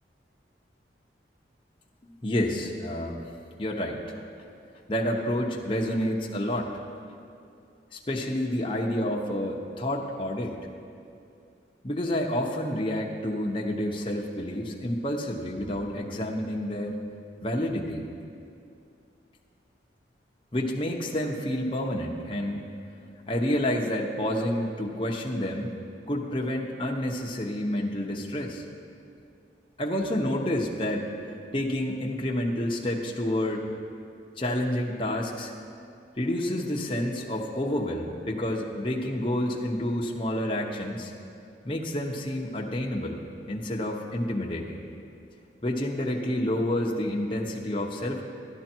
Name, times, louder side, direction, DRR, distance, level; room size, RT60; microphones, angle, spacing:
voice 1, 2.0-3.2 3.6-4.0 4.9-6.7 7.9-10.6 11.8-17.0 17.4-18.1 20.5-22.6 23.3-25.7 26.1-28.6 29.8-31.1 31.5-33.7 34.4-35.5 36.2-41.1 41.6-43.2 43.5-44.8 45.6-48.2, left 1 dB, 30° left, -1 dB, 0.9 m, -29 dB
11.5 x 11.5 x 4.5 m, 2.5 s
head